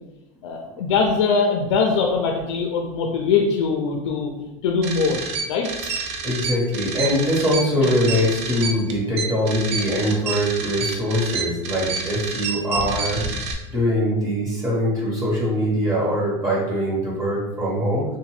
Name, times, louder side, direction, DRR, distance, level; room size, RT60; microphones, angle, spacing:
voice 1, 0.4-4.3 4.6-5.2 5.5-5.7, left 5 dB, 90° left, 1 dB, 0.4 m, -21 dB
sound 1, 4.8-13.5, right 5 dB, 50° right, 0.4 m, -29 dB
voice 2, 6.2-13.2 13.7-18.0, equal, 20° right, -4 dB, 0.9 m, -22 dB
2.6 x 2.2 x 3.1 m, 0.97 s
supercardioid pair, 140°, 15 cm